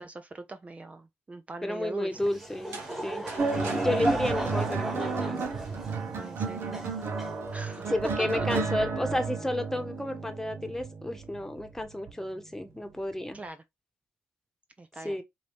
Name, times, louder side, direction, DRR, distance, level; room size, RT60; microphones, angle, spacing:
voice 1, 0.0-2.2 6.2-6.8 7.5-8.5 13.3-13.6 14.8-15.2, right 2 dB, 30° right, 0.6 m, -41 dB
voice 2, 1.6-3.2 3.7-5.4 7.9-13.4 15.0-15.2, left 1 dB, 10° left, 1.2 m, -32 dB
Laughter / Crowd, 2.1-7.9, equal, 10° right, 1.9 m, -35 dB
sound 1, 2.5-5.4, right 4 dB, 80° right, 1.3 m, -46 dB
sound 2, 3.4-12.1 13.1-13.3, right 4 dB, 60° right, 1.1 m, -32 dB
4.9 x 2.8 x 3.4 m
supercardioid pair, 60°, 4 cm